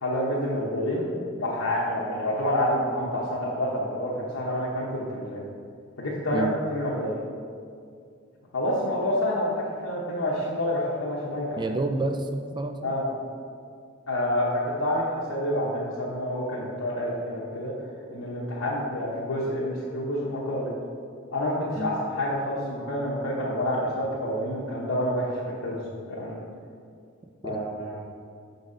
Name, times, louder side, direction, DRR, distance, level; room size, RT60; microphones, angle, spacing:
voice 1, 0.0-5.4 6.0-7.2 8.5-9.5 9.8-11.7 12.8-13.1 14.1-17.7 18.1-20.7 21.3-26.4 27.4-28.0, left 1 dB, 85° left, -7 dB, 1.0 m, -28 dB
voice 2, 11.6-12.9 21.7-21.9 27.4-27.6, right 2 dB, 20° right, 6 dB, 0.3 m, -29 dB
6.3 x 4.1 x 4.9 m, 2.3 s
head